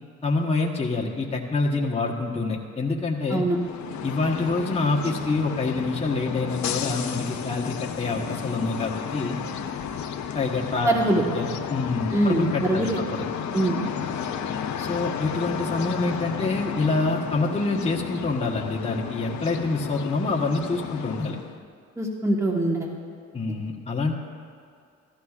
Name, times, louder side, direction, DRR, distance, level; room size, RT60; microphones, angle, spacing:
voice 1, 0.2-3.4 4.0-9.4 10.3-10.9 11.3-13.3 14.8-21.4 23.3-24.1, left 3 dB, 20° left, -1 dB, 1.1 m, -26 dB
sound 1, 3.5-21.6, left 7 dB, 70° left, 0.8 m, -32 dB
voice 2, 10.8-11.2 12.1-13.0 13.5-13.8 22.0-22.9, right 1 dB, 10° right, 0 dB, 1.3 m, -23 dB
15.5 x 12.5 x 2.4 m, 2.3 s
cardioid pair, 90°, 30 cm